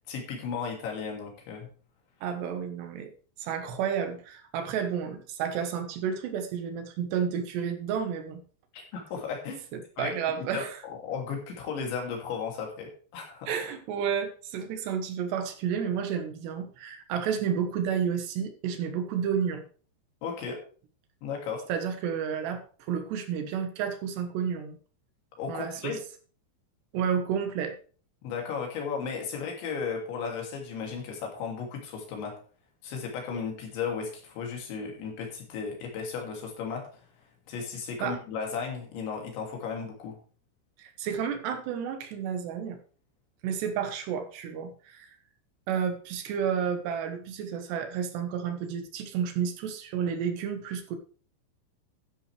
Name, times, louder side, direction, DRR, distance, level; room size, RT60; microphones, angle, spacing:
voice 1, 0.1-1.7 8.7-9.6 10.0-10.1 10.5-13.5 20.2-20.6 21.2-21.6 25.4-26.0 28.2-32.4 32.8-36.9 37.5-40.2, left 6 dB, 75° left, 1 dB, 5.0 m, -35 dB
voice 2, 2.2-3.1 3.4-8.4 10.0-10.8 13.5-19.6 21.7-24.8 25.5-26.0 26.9-27.7 38.0-38.2 40.8-42.8 43.4-45.1 45.7-51.0, right 7 dB, 70° right, 7 dB, 3.3 m, -31 dB
12.5 x 10.0 x 3.4 m, 0.40 s
omnidirectional pair, 5.3 m